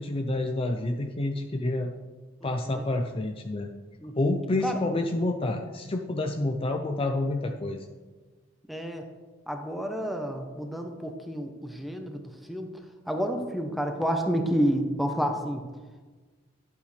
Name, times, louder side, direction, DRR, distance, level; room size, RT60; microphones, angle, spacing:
voice 1, 0.0-1.9 2.4-3.7 4.1-7.9, left 2 dB, 25° left, 4 dB, 0.5 m, -28 dB
voice 2, 2.4-2.9 4.0-4.3 4.6-4.8 8.7-9.0 9.5-12.7 13.1-15.6, equal, ahead, 4 dB, 0.8 m, -30 dB
11.0 x 8.3 x 3.3 m, 1.3 s
head